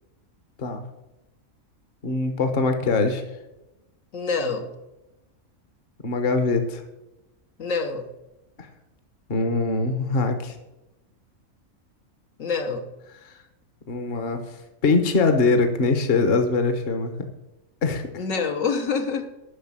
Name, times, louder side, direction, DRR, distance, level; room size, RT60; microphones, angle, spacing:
voice 1, 2.0-3.2 6.0-6.8 8.6-8.7 9.3-10.6 13.2-13.4 13.9-14.6 14.8-17.2 17.8-18.2, left 3 dB, 45° left, 7 dB, 1.2 m, -23 dB
voice 2, 4.1-4.7 7.6-8.1 12.4-12.8 18.2-19.2, left 5 dB, 70° left, 4 dB, 1.5 m, -26 dB
9.9 x 6.2 x 7.4 m, 0.97 s
omnidirectional pair, 1.4 m